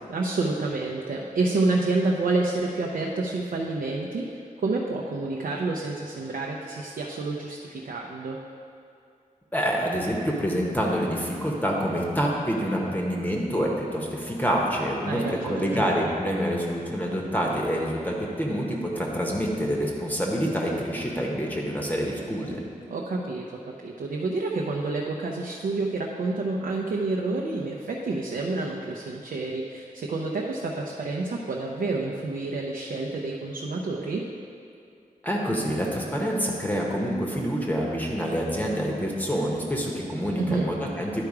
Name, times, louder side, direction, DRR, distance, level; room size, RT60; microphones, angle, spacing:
voice 1, 0.1-8.4 15.0-15.8 22.9-34.3 40.4-40.6, right 3 dB, 85° right, -1 dB, 0.6 m, -29 dB
voice 2, 9.5-22.6 35.2-41.2, equal, 10° left, -2 dB, 0.8 m, -27 dB
11.0 x 4.7 x 4.8 m, 2.4 s
wide cardioid pair, 175°, 14 cm